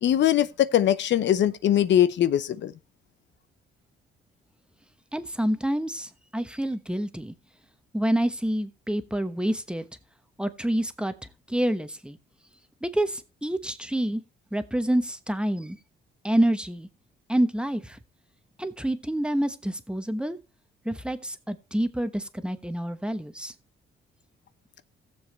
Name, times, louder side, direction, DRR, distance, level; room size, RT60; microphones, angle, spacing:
voice 1, 0.0-2.7, left 11 dB, 65° left, 0.8 m, -21 dB
voice 2, 5.1-7.3 7.9-9.8 10.4-11.1 11.5-12.2 12.8-14.2 14.5-15.8 16.2-16.9 17.3-18.0 18.6-20.4 20.8-23.5, right 1 dB, 5° right, 1.1 m, -27 dB
16.5 x 7.2 x 3.3 m
cardioid pair, 90°, 20 cm